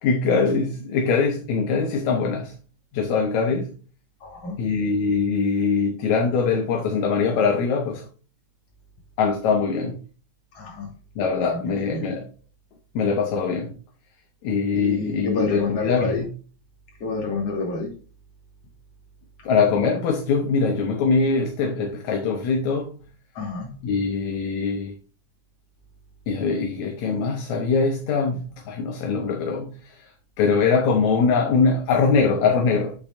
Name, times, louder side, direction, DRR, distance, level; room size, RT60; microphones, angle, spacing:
voice 1, 0.0-2.6 2.9-3.7 4.6-8.1 9.2-10.0 11.2-12.3 12.9-13.8 14.4-16.3 19.5-23.0 23.8-24.9 26.3-30.1 30.4-32.9, left 5 dB, 70° left, 2.3 m, -22 dB
voice 2, 4.2-4.6 10.5-10.9 11.4-12.1 14.7-16.3 17.0-17.9 23.4-23.7, left 4 dB, 50° left, 3.9 m, -28 dB
8.6 x 8.6 x 2.6 m
omnidirectional pair, 3.6 m